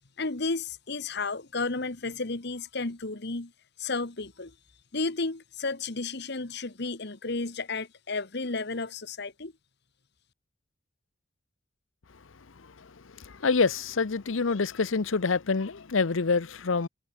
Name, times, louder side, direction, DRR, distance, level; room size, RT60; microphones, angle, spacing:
voice 1, 0.2-3.5 3.8-4.5 4.9-9.5, left 3 dB, 55° left, 1.5 m, -32 dB
voice 2, 13.2-16.9, left 4 dB, 75° left, 0.8 m, -26 dB
head